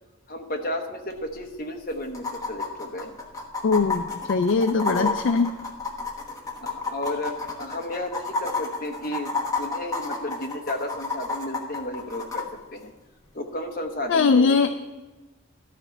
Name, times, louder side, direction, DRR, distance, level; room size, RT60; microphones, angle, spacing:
voice 1, 0.3-3.1 4.9-5.2 6.6-7.3 7.6-12.4 12.7-12.9 13.3-14.6, left 1 dB, 45° left, 3 dB, 1.1 m, -33 dB
sound 1, 1.1-1.2 1.4-1.5 2.1-12.4 14.1-14.2, left 3 dB, 15° left, 1.2 m, -30 dB
voice 2, 3.6-4.0 4.3-5.5 14.1-14.7, left 4 dB, 60° left, 9 dB, 0.4 m, -20 dB
12.5 x 4.4 x 7.1 m, 1.2 s
head